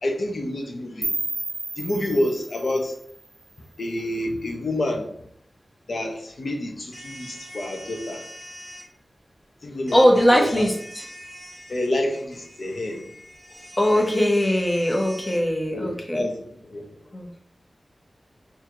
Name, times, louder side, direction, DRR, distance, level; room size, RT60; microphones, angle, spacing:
voice 1, 0.0-1.1 1.8-2.9 3.8-5.1 5.9-8.2 9.6-10.0 10.3-10.7 11.7-13.0 13.9-14.1 15.7-16.8, left 1 dB, 70° left, 2 dB, 0.7 m, -28 dB
sound 1, 1.0-3.9, right 2 dB, 45° right, 0.4 m, -33 dB
sound 2, 6.9-8.9 9.9-15.4, equal, ahead, 1.4 m, -43 dB
voice 2, 9.9-11.0 13.8-16.2 17.1-17.3, equal, 25° left, 1 dB, 0.8 m, -20 dB
4.3 x 2.7 x 2.4 m, 0.66 s
cardioid pair, 50°, 0 cm